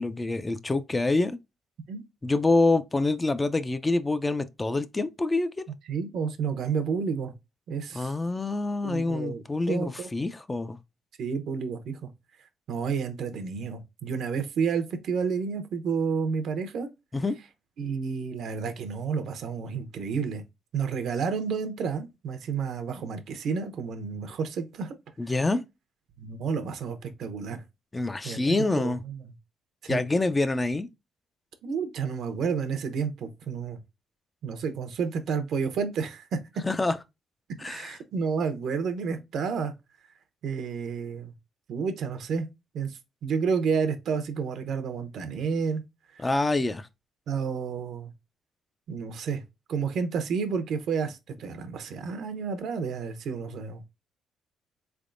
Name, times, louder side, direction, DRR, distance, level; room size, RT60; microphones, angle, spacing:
voice 1, 0.0-1.4 2.2-5.6 7.9-10.8 17.1-17.4 25.2-25.6 27.9-29.0 29.9-30.9 36.6-37.0 37.6-38.0 46.2-46.9, left 2 dB, 20° left, 0.4 m, -26 dB
voice 2, 5.9-7.3 7.7-8.1 8.8-10.1 11.2-12.1 12.7-16.9 17.8-20.4 20.7-24.9 26.2-27.6 28.2-29.2 29.8-30.0 31.6-33.8 34.4-36.4 37.7-39.7 40.4-41.3 41.7-42.5 42.7-45.8 47.3-48.1 48.9-49.4 49.7-53.9, right 5 dB, 70° right, 0.7 m, -30 dB
3.7 x 3.4 x 2.5 m
cardioid pair, 90°, 0 cm